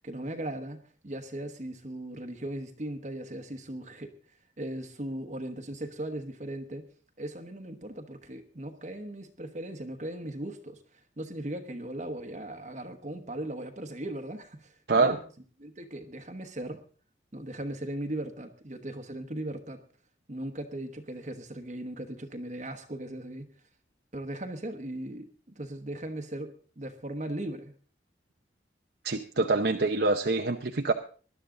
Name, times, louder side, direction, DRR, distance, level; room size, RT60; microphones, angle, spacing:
voice 1, 0.0-4.1 4.6-6.9 7.2-15.2 15.6-16.8 17.3-19.8 20.3-23.5 24.1-25.3 25.5-27.7, right 1 dB, 40° right, 7 dB, 1.2 m, -38 dB
voice 2, 29.0-30.9, right 3 dB, 60° right, 4 dB, 0.8 m, -25 dB
20.0 x 11.5 x 3.8 m, 0.41 s
head